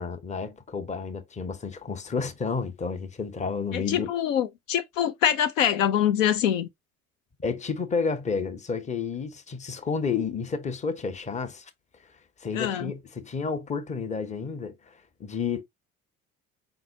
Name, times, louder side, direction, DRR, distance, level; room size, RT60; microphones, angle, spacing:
voice 1, 0.0-4.1 7.4-11.7 12.4-15.6, left 5 dB, 15° left, 0.8 m, -31 dB
voice 2, 3.7-6.7 12.5-12.9, left 10 dB, 65° left, 0.6 m, -24 dB
4.5 x 3.9 x 2.6 m
figure-of-eight pair, 60°, 41 cm